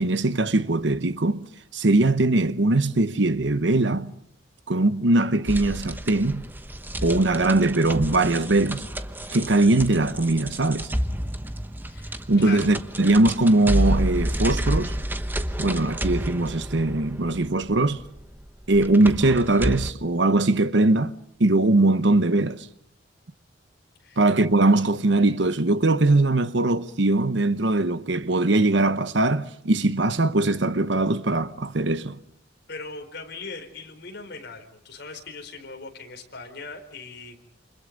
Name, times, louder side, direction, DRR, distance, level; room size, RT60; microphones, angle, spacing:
voice 1, 0.0-1.5 1.7-4.1 4.7-6.4 7.0-8.9 9.3-10.9 12.3-14.9 15.6-18.0 18.7-21.1 21.4-22.7 24.2-32.2, right 2 dB, 65° right, 1.1 m, -21 dB
sound 1, 5.5-19.9, right 1 dB, 10° right, 1.0 m, -30 dB
voice 2, 11.9-12.7 24.0-24.2 32.7-37.5, left 4 dB, 55° left, 4.5 m, -39 dB
28.5 x 26.5 x 5.3 m
head